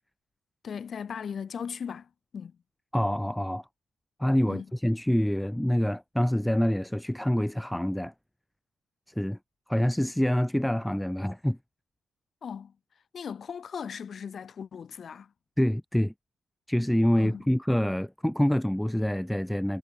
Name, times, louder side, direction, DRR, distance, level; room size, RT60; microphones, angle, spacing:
voice 1, 0.6-2.5 4.5-4.6 12.4-12.7 13.1-15.3 17.2-17.4, left 7 dB, 50° left, 2.7 m, -38 dB
voice 2, 2.9-3.7 4.2-8.1 9.1-9.4 9.7-11.6 15.6-16.1 16.7-19.8, equal, 5° left, 0.4 m, -26 dB
cardioid pair, 90°, 0 cm